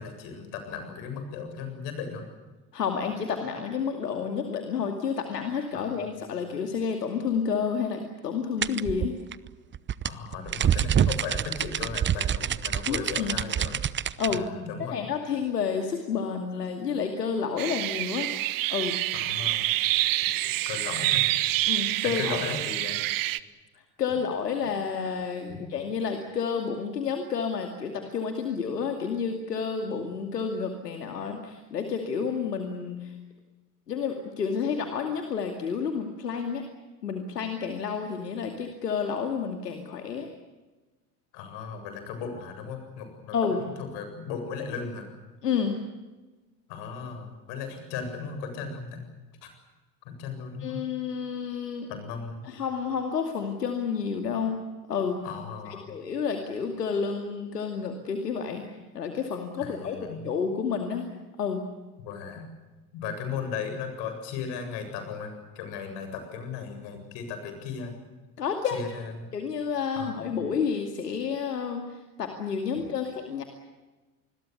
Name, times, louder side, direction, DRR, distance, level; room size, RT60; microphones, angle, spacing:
voice 1, 0.0-2.2 5.7-5.9 10.0-13.8 14.3-15.0 19.1-19.7 20.7-21.3 22.0-23.0 25.5-25.7 41.3-45.1 46.7-49.0 49.4-49.5 50.0-50.8 51.9-52.4 55.2-55.9 59.6-60.3 62.0-62.5 62.9-68.0 68.7-69.1 69.9-70.3 72.8-72.9, left 6 dB, 60° left, 7 dB, 7.8 m, -36 dB
voice 2, 2.7-9.1 12.9-13.4 14.2-14.5 14.9-18.3 18.7-19.0 21.7-22.4 24.0-33.1 33.9-36.6 37.0-40.3 43.3-43.7 45.4-45.8 50.6-51.9 52.4-54.6 54.9-55.2 55.7-58.6 58.9-60.0 60.2-61.1 61.4-61.6 68.4-68.8 69.3-73.4, left 6 dB, 85° left, 5 dB, 2.5 m, -30 dB
sound 1, 8.6-14.4, right 9 dB, 25° right, 0.8 m, -27 dB
sound 2, 17.6-23.4, right 16 dB, 45° right, 1.2 m, -27 dB
27.0 x 21.5 x 8.3 m, 1.2 s
hypercardioid pair, 75°, 47 cm